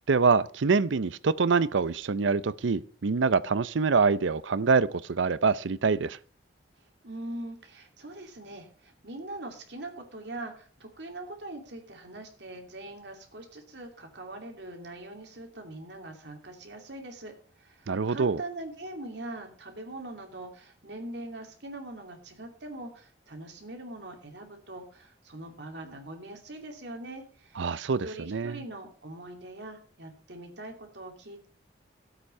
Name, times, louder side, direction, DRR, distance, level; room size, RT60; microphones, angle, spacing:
voice 1, 0.1-6.2 17.9-18.4 27.6-28.6, right 4 dB, 80° right, 0.6 m, -25 dB
voice 2, 7.0-17.3 17.6-27.7 28.0-31.5, right 2 dB, 65° right, 2.7 m, -42 dB
13.5 x 8.2 x 5.6 m
head